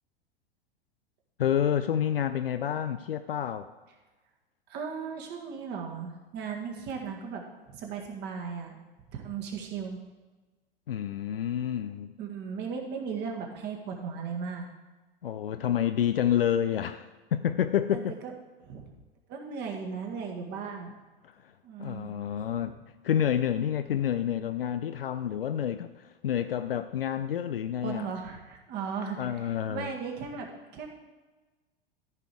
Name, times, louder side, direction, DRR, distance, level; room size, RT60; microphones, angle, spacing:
voice 1, 1.4-3.7 10.9-12.1 15.2-18.2 21.4-21.5 21.8-22.8 23.0-28.1 29.2-29.9, left 9 dB, 70° left, 10 dB, 0.5 m, -29 dB
voice 2, 4.7-8.8 9.1-10.0 12.2-14.6 17.9-18.3 18.6-18.9 19.3-21.0 21.6-22.1 27.8-30.5 30.7-30.9, right 6 dB, 35° right, 1 dB, 1.8 m, -37 dB
14.0 x 5.3 x 4.7 m, 1.2 s
figure-of-eight pair, 95°, 30 cm